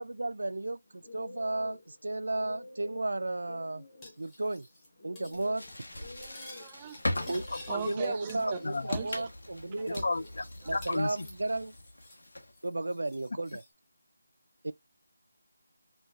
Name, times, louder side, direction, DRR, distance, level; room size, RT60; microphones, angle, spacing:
voice 1, 0.0-3.8 4.2-4.7 5.0-5.6 7.3-7.4 7.7-10.1 10.6-11.7 12.6-13.6 14.6-14.7, right 2 dB, 85° right, 0.4 m, -34 dB
sound 1, 0.9-11.0, left 2 dB, 35° left, 1.5 m, -51 dB
Cutlery silverware, 4.0-4.9 5.2-5.4 5.7-8.0 8.3-9.0 9.3-9.4 9.9-12.3 12.5-13.7, left 2 dB, 10° left, 0.8 m, -53 dB
sound 2, 5.3-12.6, left 1 dB, 90° left, 1.0 m, -40 dB
voice 2, 6.2-7.3 7.7-8.6 8.9-9.3, right 8 dB, 15° right, 0.4 m, -40 dB
voice 3, 8.6-9.0 10.0-10.4 10.7-11.2, left 3 dB, 65° left, 0.3 m, -32 dB
4.3 x 2.3 x 2.4 m
figure-of-eight pair, 175°, 0 cm